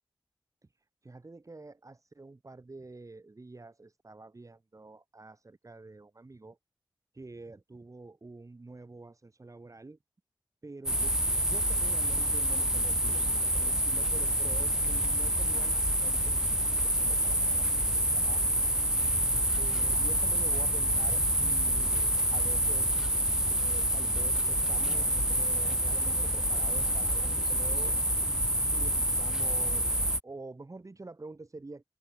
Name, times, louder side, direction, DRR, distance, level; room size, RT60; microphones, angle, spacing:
voice 1, 1.0-6.6 7.1-10.0 10.6-16.4 16.7-18.6 19.6-22.9 23.5-28.0 28.7-29.9 30.2-31.8, right 3 dB, 40° right, 7.4 m, -47 dB
sound 1, 10.9-30.2, right 1 dB, 5° right, 1.0 m, -27 dB
wide cardioid pair, 75°, 9 cm